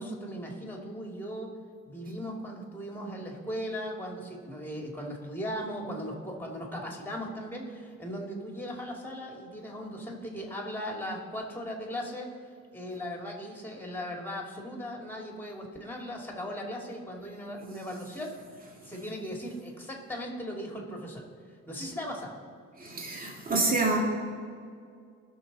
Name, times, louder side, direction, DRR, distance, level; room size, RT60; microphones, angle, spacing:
voice 1, 0.0-1.5 1.8-12.3 12.7-18.3 18.8-21.2 21.7-22.4, equal, 5° left, 0 dB, 2.5 m, -38 dB
voice 2, 22.8-24.0, right 3 dB, 30° right, -1 dB, 2.2 m, -27 dB
19.5 x 6.5 x 4.1 m, 2.2 s
cardioid pair, 90°, 30 cm